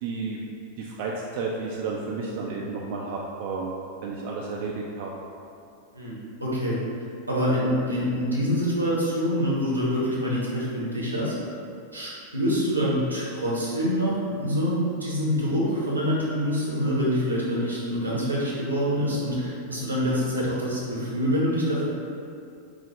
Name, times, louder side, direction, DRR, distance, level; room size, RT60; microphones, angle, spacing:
voice 1, 0.0-0.4 0.8-3.7 4.0-5.1, right 4 dB, 50° right, -2 dB, 0.3 m, -32 dB
voice 2, 5.9-6.8 7.3-11.3 11.9-21.9, equal, 85° right, -6 dB, 0.9 m, -26 dB
4.8 x 2.0 x 3.0 m, 2.5 s
figure-of-eight pair, 90°, 0 cm